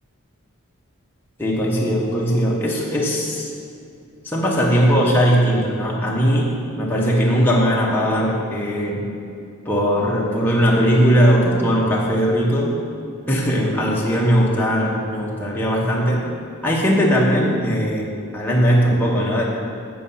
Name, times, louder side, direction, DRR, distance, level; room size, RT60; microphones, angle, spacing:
voice 1, 1.4-3.5 4.2-9.0 9.6-12.7 13.3-16.2 16.6-18.1 18.3-19.4, equal, 10° left, -4 dB, 1.2 m, -19 dB
7.3 x 7.2 x 5.6 m, 2.5 s
head